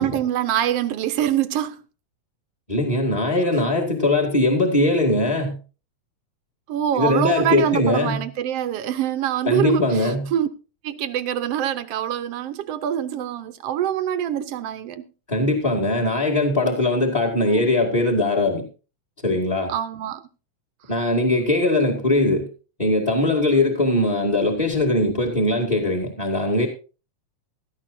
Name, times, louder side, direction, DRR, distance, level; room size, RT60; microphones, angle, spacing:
voice 1, 0.0-1.8 6.7-10.5 10.8-15.0 17.4-17.7 19.7-20.2, right 10 dB, 70° right, 1.5 m, -25 dB
voice 2, 2.7-5.6 6.9-8.2 9.4-10.3 15.3-18.7 19.2-19.7 20.9-22.5 22.8-26.7, left 2 dB, 15° left, 2.0 m, -21 dB
17.5 x 13.5 x 2.7 m
omnidirectional pair, 3.5 m